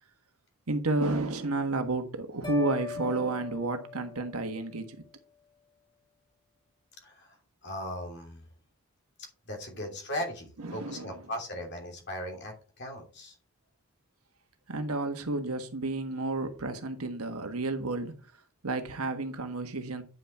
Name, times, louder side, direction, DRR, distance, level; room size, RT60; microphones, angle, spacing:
voice 1, 0.7-5.0 10.6-11.3 14.7-18.1 18.6-20.0, right 2 dB, 80° right, 1.5 m, -31 dB
sound 1, 2.4-4.7, left 6 dB, 20° left, 3.4 m, -39 dB
voice 2, 7.0-7.4 7.6-8.4 9.5-13.4, left 1 dB, 50° left, 2.9 m, -38 dB
9.5 x 5.9 x 4.3 m
head